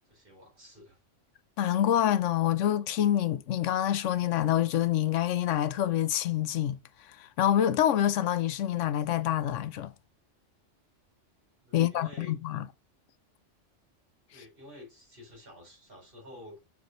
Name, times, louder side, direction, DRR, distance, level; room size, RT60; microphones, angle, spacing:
voice 1, 0.1-1.0 11.6-12.6 14.3-16.6, left 2 dB, 45° right, 4.0 m, -50 dB
voice 2, 1.6-9.9 11.7-12.6, left 11 dB, 80° left, 0.9 m, -27 dB
6.3 x 4.7 x 3.9 m
omnidirectional pair, 1.3 m